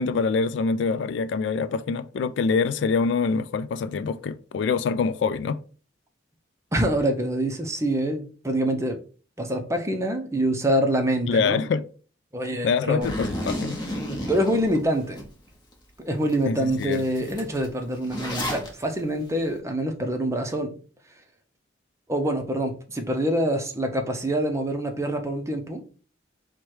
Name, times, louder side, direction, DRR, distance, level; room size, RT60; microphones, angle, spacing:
voice 1, 0.0-5.6 11.3-11.8 12.6-13.8 16.4-17.0, left 5 dB, 70° left, 0.3 m, -25 dB
voice 2, 6.7-9.0 9.4-11.6 12.3-13.1 14.3-15.2 16.0-20.7 22.1-25.8, right 1 dB, 15° right, 0.6 m, -25 dB
Zipper (clothing), 13.0-15.2 15.7-15.8 16.3-16.4 16.7-18.7, equal, 25° left, 1.0 m, -32 dB
4.6 x 2.2 x 4.5 m
head